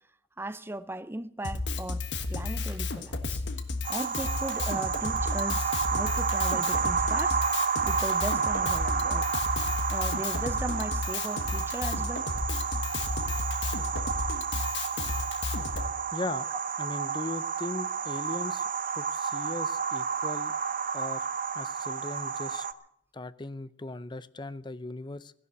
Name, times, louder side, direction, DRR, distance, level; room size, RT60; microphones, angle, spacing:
voice 1, 0.4-3.4 3.9-7.4 7.8-9.3 9.9-12.3, right 1 dB, 15° right, 0.6 m, -37 dB
Drum kit, 1.4-15.9, left 3 dB, 70° left, 1.5 m, -33 dB
sound 1, 3.8-22.7, right 6 dB, 50° right, 0.8 m, -30 dB
voice 2, 16.1-16.5 16.8-18.6 19.0-20.5 20.9-21.2 21.5-22.7 23.1-25.3, left 2 dB, 25° left, 0.6 m, -38 dB
15.0 x 11.5 x 8.3 m
head